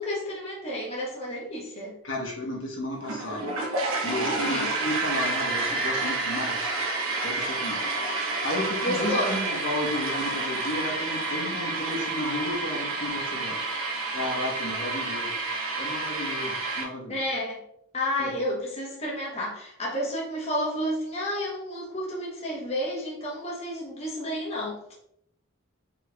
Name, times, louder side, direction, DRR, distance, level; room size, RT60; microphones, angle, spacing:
voice 1, 0.0-2.0 4.4-4.7 8.8-9.3 17.1-17.6 17.9-24.9, equal, 30° left, -4 dB, 1.1 m, -31 dB
voice 2, 2.0-3.6 4.0-6.7 7.2-7.9 8.4-13.6 14.1-15.3 15.7-17.2 18.2-18.3, left 1 dB, 60° left, -2 dB, 1.3 m, -33 dB
sound 1, 3.0-16.8, right 3 dB, 85° right, 1.0 m, -29 dB
4.8 x 4.4 x 2.4 m, 0.73 s
head